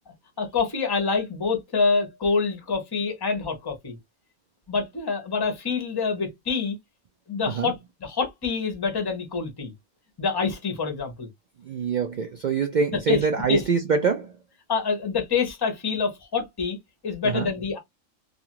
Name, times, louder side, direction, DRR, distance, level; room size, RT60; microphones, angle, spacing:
voice 1, 0.4-4.0 4.7-6.8 7.3-9.7 10.2-11.3 12.9-13.6 14.7-16.8 17.0-17.8, left 5 dB, 25° left, 0.6 m, -26 dB
voice 2, 11.6-14.3 17.2-17.5, right 5 dB, 80° right, 0.4 m, -25 dB
2.6 x 2.4 x 2.9 m
omnidirectional pair, 1.3 m